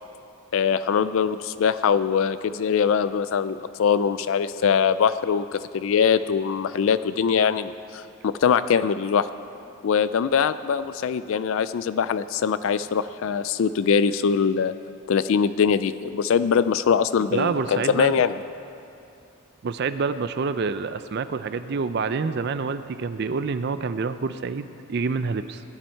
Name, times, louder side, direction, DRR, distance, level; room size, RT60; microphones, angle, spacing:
voice 1, 0.5-9.3 9.8-14.7 15.1-18.3, left 6 dB, 65° left, 14 dB, 0.3 m, -22 dB
voice 2, 17.3-18.1 19.6-25.6, right 4 dB, 50° right, 11 dB, 0.4 m, -27 dB
20.0 x 10.5 x 4.5 m, 2.7 s
head